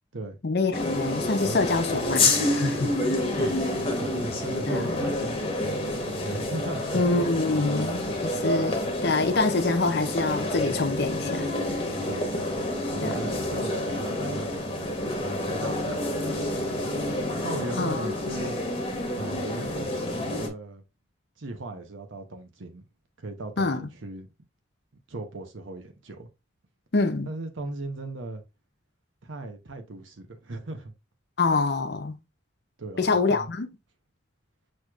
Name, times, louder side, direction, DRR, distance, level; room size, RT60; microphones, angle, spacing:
voice 1, 0.4-2.9 4.7-4.9 6.9-11.5 13.0-13.2 17.8-18.1 23.6-23.9 26.9-27.3 31.4-32.2 33.0-33.7, left 3 dB, 55° left, 0.7 m, -26 dB
sound 1, 0.7-20.5, left 1 dB, 30° left, 1.0 m, -28 dB
voice 2, 3.0-7.0 12.1-12.4 12.9-15.1 15.5-17.1 17.4-18.6 19.2-20.8 21.4-22.8 23.2-24.3 25.1-26.3 27.2-28.4 29.2-30.9 32.8-33.5, right 2 dB, 75° right, 0.9 m, -38 dB
6.4 x 3.1 x 2.4 m
head